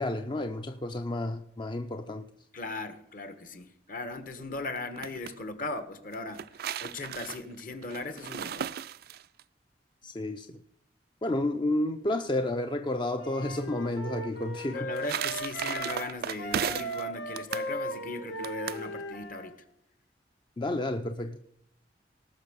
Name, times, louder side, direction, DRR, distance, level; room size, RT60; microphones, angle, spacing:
voice 1, 0.0-2.3 10.0-10.6 11.2-14.9 20.6-21.5, left 1 dB, 25° left, 0.6 m, -31 dB
voice 2, 2.5-6.5 6.8-8.7 14.6-19.5, left 2 dB, 50° left, 1.4 m, -38 dB
sound 1, 4.8-5.3 6.1-9.4 14.6-17.0 17.4-17.7 18.4-18.9, right 8 dB, 60° right, 0.4 m, -35 dB
Wind instrument woodwind instrument, 13.1-16.1 16.4-19.5, equal, 85° left, 1.9 m, -37 dB
18.5 x 6.4 x 5.3 m
head